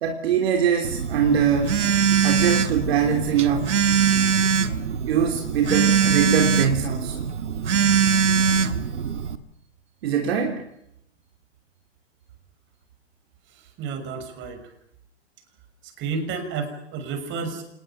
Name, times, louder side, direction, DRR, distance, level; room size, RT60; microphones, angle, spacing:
voice 1, 0.0-1.9 2.2-3.9 5.0-7.2 10.0-10.6, right 7 dB, 60° right, 3 dB, 3.4 m, -23 dB
Telephone, 0.8-9.4, right 6 dB, 75° right, 1.9 m, -22 dB
voice 2, 13.5-14.6 15.8-17.6, right 5 dB, 30° right, 7 dB, 6.3 m, -31 dB
27.0 x 20.0 x 7.3 m, 0.76 s
hypercardioid pair, 120°, 36 cm